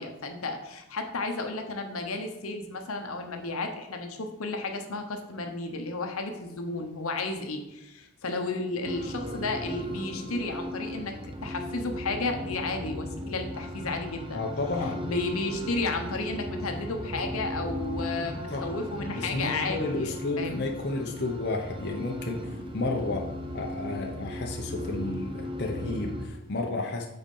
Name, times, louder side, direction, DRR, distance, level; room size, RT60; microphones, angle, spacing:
voice 1, 0.0-11.1 11.4-14.5 15.0-20.7, left 3 dB, 75° left, 4 dB, 1.0 m, -33 dB
sound 1, 8.8-26.3, equal, 25° right, 0.7 m, -37 dB
voice 2, 14.3-15.0 18.5-18.7 19.1-27.1, left 2 dB, 50° left, 0 dB, 0.8 m, -32 dB
7.8 x 4.4 x 5.5 m, 0.93 s
head